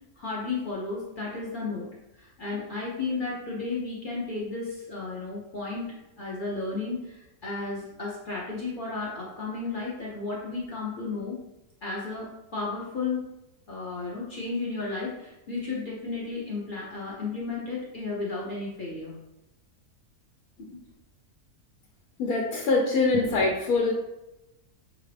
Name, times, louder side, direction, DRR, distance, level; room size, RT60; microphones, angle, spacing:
voice 1, 0.2-11.4 11.8-13.3 13.7-19.1 20.6-20.8, left 3 dB, 50° left, -4 dB, 0.6 m, -33 dB
voice 2, 22.2-23.9, left 3 dB, 70° left, -1 dB, 1.1 m, -24 dB
5.7 x 2.5 x 3.3 m, 0.93 s
omnidirectional pair, 1.7 m